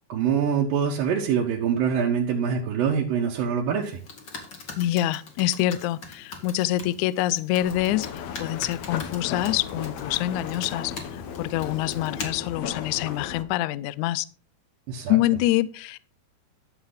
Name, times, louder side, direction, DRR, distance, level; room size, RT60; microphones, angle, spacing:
voice 1, 0.1-4.0 14.9-15.2, right 7 dB, 75° right, -2 dB, 3.0 m, -24 dB
Computer keyboard, 3.8-12.3, left 4 dB, 40° left, 2.2 m, -42 dB
voice 2, 4.8-8.1 8.4-14.3 15.1-16.0, left 14 dB, 90° left, 17 dB, 1.7 m, -26 dB
sound 1, 7.6-13.4, left 7 dB, 65° left, 2.0 m, -35 dB
13.5 x 7.3 x 4.0 m, 0.39 s
omnidirectional pair, 4.1 m